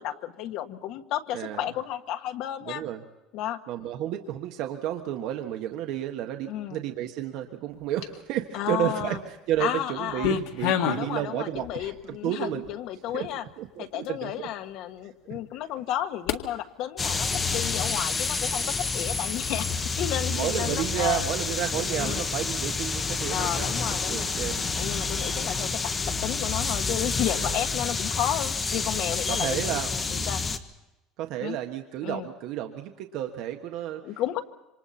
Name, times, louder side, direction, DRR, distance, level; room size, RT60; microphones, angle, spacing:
voice 1, 0.0-2.8 3.3-3.6 6.5-6.8 8.5-9.2 9.6-10.4 10.8-13.4 13.8-19.7 20.0-21.2 22.0-22.2 23.3-24.3 24.8-25.9 26.2-30.4 31.4-31.6 32.0-32.3 34.0-34.4, left 12 dB, 55° left, 7 dB, 1.5 m, -32 dB
voice 2, 1.3-1.7 2.7-3.0 3.7-12.7 13.1-13.3 13.6-14.5 15.3-15.4 20.3-23.8 24.1-24.6 27.4-27.7 29.3-29.9 31.2-34.0, right 12 dB, 55° right, 5 dB, 1.4 m, -31 dB
sound 1, 7.7-8.4 9.0-9.6 9.9-11.1 11.5-12.0 12.6-12.7 13.3-13.4 14.0-14.1 16.3-16.4, left 9 dB, 70° left, 1.8 m, -29 dB
sound 2, 17.0-30.6, left 4 dB, 15° left, 1.1 m, -29 dB
27.0 x 26.0 x 4.3 m, 1.0 s
cardioid pair, 165°, 0 cm